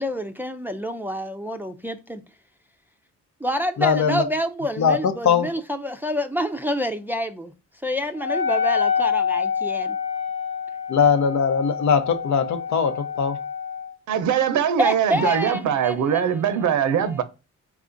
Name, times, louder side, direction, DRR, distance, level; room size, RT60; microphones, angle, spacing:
voice 1, 0.0-2.2 3.4-7.5 7.8-10.0 14.8-16.4 17.0-17.2, equal, 5° right, 0.5 m, -27 dB
voice 2, 3.8-4.2 4.8-5.5 10.9-13.4, left 6 dB, 75° left, 0.8 m, -20 dB
Wind instrument woodwind instrument, 8.2-13.9, left 6 dB, 45° left, 1.0 m, -27 dB
voice 3, 14.1-17.2, right 8 dB, 80° right, 0.7 m, -22 dB
4.8 x 2.4 x 3.8 m
cardioid pair, 85°, 29 cm